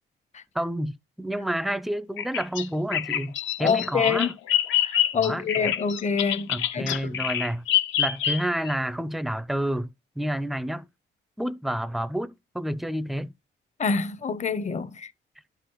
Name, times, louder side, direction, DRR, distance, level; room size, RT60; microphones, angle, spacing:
voice 1, 0.5-4.3 5.2-5.7 6.5-7.6 8.0-10.9 11.4-13.3, right 1 dB, ahead, 0.4 m, -29 dB
Bird vocalization bird call bird song, 2.2-8.7, left 11 dB, 75° left, 0.6 m, -26 dB
voice 2, 3.6-4.3 4.8-7.1 13.8-15.1, left 5 dB, 35° left, 0.7 m, -26 dB
11.0 x 4.9 x 3.1 m
cardioid pair, 90°, 20 cm